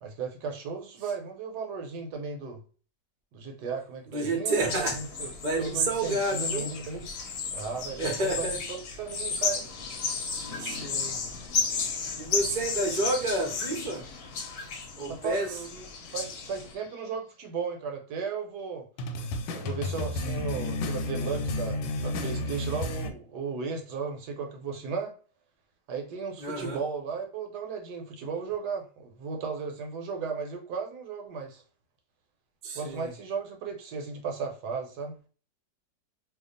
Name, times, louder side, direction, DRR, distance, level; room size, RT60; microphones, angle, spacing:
voice 1, 0.0-2.6 3.3-5.3 5.6-7.1 7.5-9.7 15.1-15.8 16.1-18.9 19.5-25.1 25.9-31.6 32.7-35.1, right 5 dB, 70° right, 1.2 m, -35 dB
voice 2, 4.1-5.0 5.4-6.7 8.0-8.6 10.6-11.2 12.2-14.0 15.0-15.5 26.4-26.8 32.6-33.1, right 2 dB, 45° right, 0.6 m, -29 dB
sound 1, 4.5-16.7, left 5 dB, 65° left, 1.1 m, -34 dB
sound 2, 7.9-8.9 10.1-11.0 11.3-11.5 12.8-14.2 15.4-16.9 19.0-23.1, left 2 dB, 90° left, 1.3 m, -34 dB
2.8 x 2.4 x 3.7 m
omnidirectional pair, 2.0 m